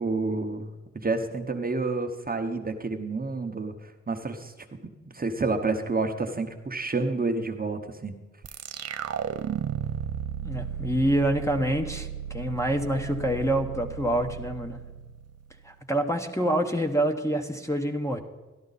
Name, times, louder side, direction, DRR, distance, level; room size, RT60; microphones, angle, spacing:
voice 1, 0.0-4.5 5.1-8.1, right 3 dB, 30° right, 5 dB, 1.0 m, -29 dB
sound 1, 8.4-15.7, right 9 dB, 55° right, 0.6 m, -35 dB
voice 2, 10.4-15.0 15.6-18.2, right 1 dB, 10° left, 4 dB, 1.1 m, -27 dB
13.0 x 11.5 x 4.1 m, 1.2 s
cardioid pair, 80°, 29 cm